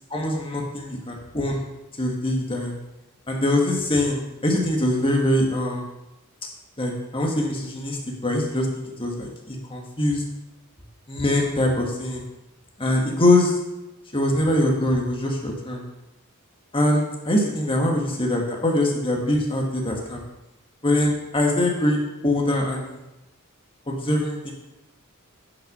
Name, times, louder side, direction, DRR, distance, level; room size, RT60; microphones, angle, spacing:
voice 1, 0.1-1.6 2.0-2.7 3.3-5.8 6.8-10.2 11.1-12.2 12.8-13.6 14.1-15.8 16.7-20.2 20.8-23.0 23.9-24.5, left 1 dB, 25° left, 0 dB, 1.7 m, -23 dB
10.5 x 5.9 x 5.5 m, 0.97 s
head